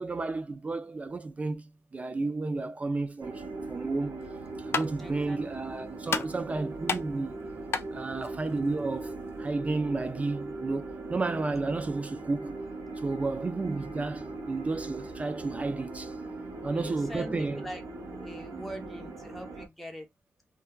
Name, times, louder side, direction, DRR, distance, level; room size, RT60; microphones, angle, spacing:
voice 1, 0.0-3.4 3.7-4.2 4.7-7.3 7.9-12.6 13.0-16.1 16.6-17.7 18.5-18.6, right 3 dB, 25° right, 0.3 m, -32 dB
sound 1, 3.2-19.7, right 2 dB, 65° right, 0.7 m, -40 dB
sound 2, 4.2-9.5, left 5 dB, 50° left, 0.4 m, -36 dB
voice 2, 5.0-5.6 16.6-17.8 18.1-20.1, equal, 5° left, 0.8 m, -42 dB
3.0 x 2.2 x 2.2 m
wide cardioid pair, 145°, 5 cm